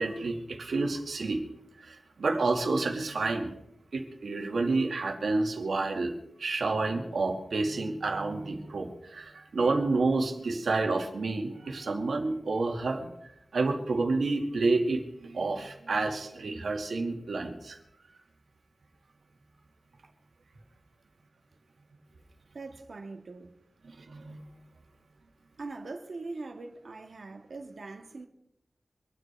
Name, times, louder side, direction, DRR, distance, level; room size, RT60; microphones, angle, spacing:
voice 1, 0.0-1.4 1.8-3.5 3.9-6.1 6.4-13.1 13.5-17.8 24.0-24.4, right 3 dB, 90° right, 2.5 m, -29 dB
voice 2, 22.5-23.5 25.6-28.3, right 3 dB, 65° right, 2.0 m, -41 dB
25.0 x 9.9 x 4.8 m
wide cardioid pair, 110°, 0 cm